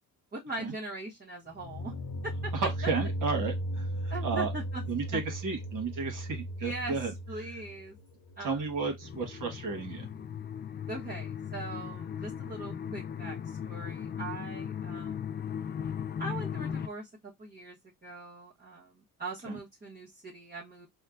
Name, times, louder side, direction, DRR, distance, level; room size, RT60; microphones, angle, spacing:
voice 1, 0.3-1.9 2.2-2.5 4.1-4.8 5.1-5.2 6.6-8.0 8.4-8.6 10.9-15.3 16.2-20.9, right 2 dB, 25° right, 1.2 m, -41 dB
sound 1, 1.5-10.4, right 1 dB, 70° left, 0.7 m, -37 dB
voice 2, 2.5-3.9 4.2-4.5 4.9-7.1 8.4-10.1 19.5-19.6, right 4 dB, 60° right, 1.4 m, -33 dB
sound 2, 9.0-16.9, left 8 dB, 30° left, 0.4 m, -37 dB
4.3 x 2.3 x 2.6 m
supercardioid pair, 70°, 37 cm